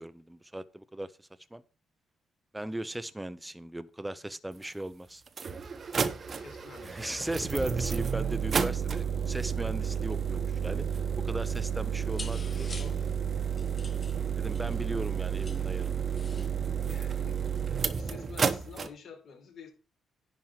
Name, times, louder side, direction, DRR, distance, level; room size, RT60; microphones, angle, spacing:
voice 1, 0.0-1.6 2.5-5.2 6.8-10.9 11.2-12.7 14.4-16.0, right 1 dB, 10° right, 0.8 m, -37 dB
sound 1, 4.6-4.7 5.3-18.9, right 7 dB, 40° right, 1.1 m, -31 dB
voice 2, 6.3-7.3 12.7-13.4 16.7-17.4 17.7-19.7, left 6 dB, 60° left, 4.7 m, -49 dB
sound 2, 12.0-16.5, left 4 dB, 35° left, 1.4 m, -48 dB
10.5 x 4.7 x 7.5 m
cardioid pair, 90°, 0 cm